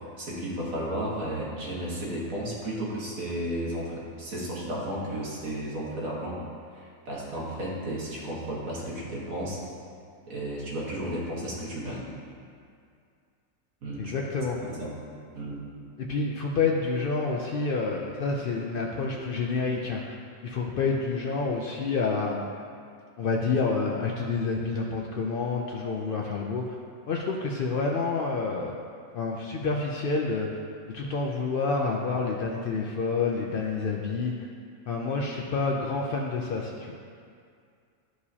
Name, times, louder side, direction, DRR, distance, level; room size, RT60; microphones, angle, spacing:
voice 1, 0.2-6.4 6.7-9.6 10.3-12.1 13.8-14.1 14.6-15.0 15.3-15.7, right 1 dB, 65° right, -5 dB, 1.8 m, -33 dB
voice 2, 14.0-14.6 16.0-20.2 20.4-22.4 23.2-26.6 27.1-28.7 29.1-30.5 30.9-34.3 34.9-36.9, left 4 dB, 80° left, 0 dB, 0.5 m, -28 dB
11.5 x 4.8 x 2.8 m, 2.3 s
omnidirectional pair, 1.5 m